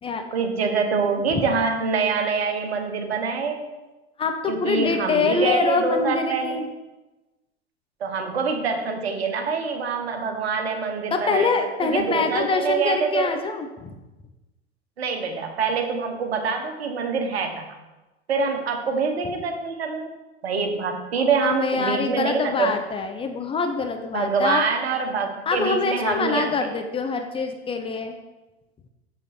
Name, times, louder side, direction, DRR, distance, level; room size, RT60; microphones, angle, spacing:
voice 1, 0.3-3.7 4.5-6.7 8.0-11.5 11.8-13.3 15.0-17.7 18.3-20.1 20.4-22.7 24.1-26.7, right 5 dB, 65° right, 5 dB, 1.4 m, -25 dB
voice 2, 4.2-6.7 11.1-13.9 21.4-24.6 25.5-28.2, left 4 dB, 15° left, 5 dB, 0.7 m, -25 dB
7.9 x 7.1 x 4.4 m, 1.1 s
figure-of-eight pair, 90°, 33 cm